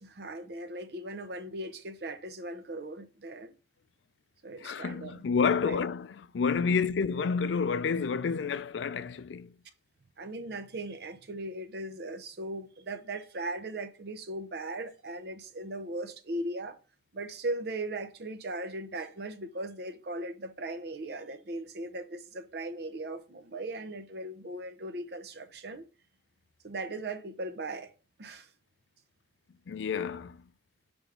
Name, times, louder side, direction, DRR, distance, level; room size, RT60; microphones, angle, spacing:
voice 1, 0.0-3.5 4.4-5.2 5.6-5.8 6.7-6.8 10.2-16.8 17.1-25.8 26.6-27.9 28.2-28.5, right 2 dB, 60° right, 0.7 m, -38 dB
voice 2, 4.6-9.6 29.7-30.4, left 5 dB, 80° left, 0.4 m, -29 dB
6.1 x 3.5 x 5.0 m
head